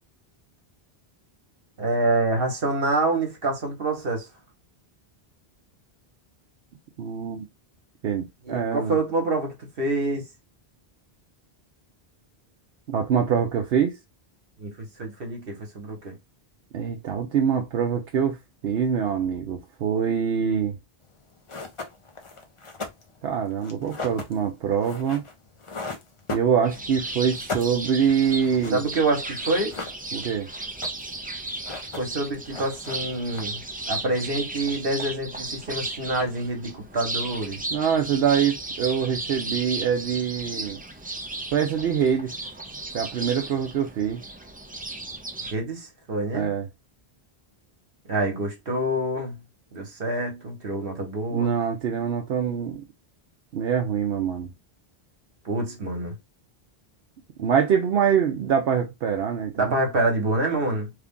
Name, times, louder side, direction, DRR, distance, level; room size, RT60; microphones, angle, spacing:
voice 1, 1.8-4.3 8.4-10.2 14.6-16.1 28.7-29.8 31.9-33.6 33.9-37.6 45.5-46.5 48.0-49.4 49.7-51.5 55.4-56.2 59.5-60.9, right 2 dB, 65° right, 1.3 m, -26 dB
voice 2, 7.0-7.5 8.0-9.0 12.9-14.0 16.7-18.4 18.6-20.8 23.2-25.2 26.3-28.8 30.1-30.5 37.7-40.8 41.5-42.3 42.9-44.2 46.3-46.7 51.3-52.8 53.5-54.5 57.4-59.8, right 7 dB, 80° right, 0.9 m, -24 dB
sound 1, 21.1-21.2 21.5-27.0 27.2-28.9 29.1-29.2 29.4-30.4 30.6-31.2 31.5-32.2 32.5-33.7, left 3 dB, 35° left, 0.7 m, -37 dB
sound 2, 26.6-45.5, right 2 dB, 15° right, 0.4 m, -35 dB
3.3 x 2.4 x 3.6 m
omnidirectional pair, 1.0 m